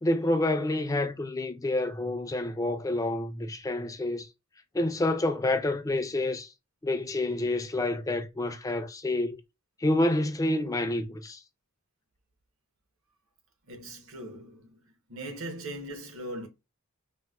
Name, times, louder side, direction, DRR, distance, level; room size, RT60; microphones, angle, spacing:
voice 1, 0.0-4.3 4.7-6.5 6.8-9.4 9.8-11.4, left 1 dB, 15° left, 0.3 m, -28 dB
voice 2, 13.7-14.8 15.1-16.5, right 1 dB, 75° right, 0.9 m, -39 dB
4.0 x 2.1 x 2.3 m
head